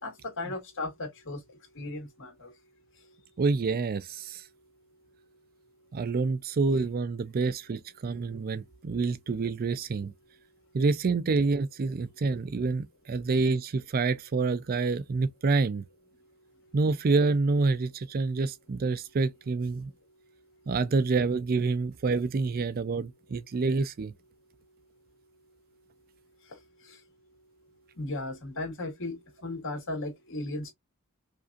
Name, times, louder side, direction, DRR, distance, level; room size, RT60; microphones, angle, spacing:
voice 1, 0.0-2.5 26.5-27.0 28.0-30.7, left 2 dB, 60° left, 2.0 m, -36 dB
voice 2, 3.4-4.4 5.9-10.1 10.7-15.8 16.7-19.9 20.7-24.1, right 4 dB, 45° right, 0.4 m, -27 dB
4.9 x 2.7 x 2.3 m
head